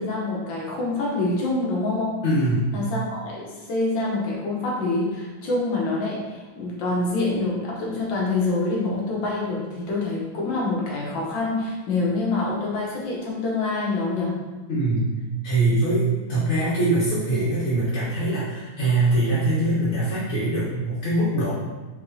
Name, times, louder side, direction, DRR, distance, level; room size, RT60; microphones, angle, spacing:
voice 1, 0.0-2.2 2.7-14.4, left 2 dB, 65° left, -4 dB, 1.5 m, -26 dB
voice 2, 2.2-2.7 14.7-15.1 15.4-21.5, right 2 dB, 40° left, -11 dB, 1.1 m, -22 dB
4.8 x 3.3 x 2.7 m, 1.2 s
omnidirectional pair, 2.4 m